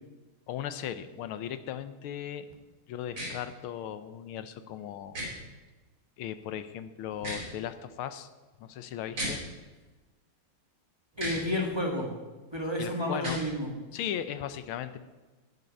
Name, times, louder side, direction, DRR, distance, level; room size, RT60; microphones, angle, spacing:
voice 1, 0.5-2.4 2.9-5.2 6.2-8.3 8.6-9.4 12.8-13.4 13.9-15.0, left 10 dB, 80° left, 11 dB, 1.6 m, -37 dB
sound 1, 3.1-3.3 5.1-5.3 7.1-7.5 9.1-9.3 11.1-11.4 13.1-13.4, right 1 dB, 70° right, 5.4 m, -34 dB
voice 2, 11.2-12.1 12.5-13.7, left 1 dB, 15° right, -1 dB, 1.7 m, -31 dB
19.0 x 6.7 x 5.3 m, 1.2 s
omnidirectional pair, 2.3 m